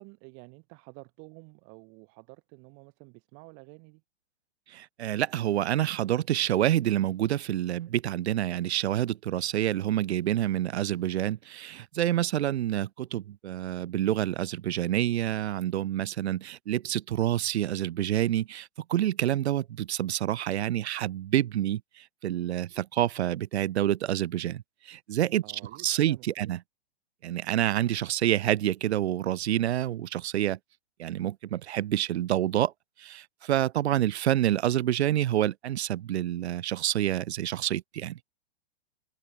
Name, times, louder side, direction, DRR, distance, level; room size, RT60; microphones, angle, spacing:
voice 1, 0.0-4.0 25.4-26.5, right 38 dB, 35° right, 2.6 m, -50 dB
voice 2, 4.7-25.4 25.8-26.6 27.2-30.6 31.0-32.7 33.0-38.2, right 12 dB, 90° right, 0.7 m, -28 dB
hypercardioid pair, 145°, 32 cm